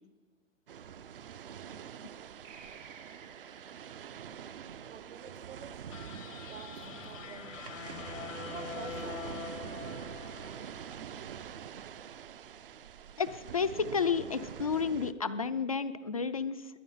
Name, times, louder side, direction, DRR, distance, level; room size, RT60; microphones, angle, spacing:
sound 1, 0.7-15.1, right 8 dB, 45° right, 0.7 m, -45 dB
sound 2, 2.4-5.5, right 5 dB, 85° right, 5.2 m, -56 dB
voice 1, 4.8-6.0 6.5-7.9 8.4-9.8, right 6 dB, 65° right, 6 dB, 1.5 m, -49 dB
sound 3, 5.9-11.2, left 7 dB, 85° left, 1.3 m, -44 dB
voice 2, 13.2-16.8, left 5 dB, 30° left, 12 dB, 0.4 m, -31 dB
21.5 x 9.0 x 5.6 m, 1.3 s
hypercardioid pair, 165°, 38 cm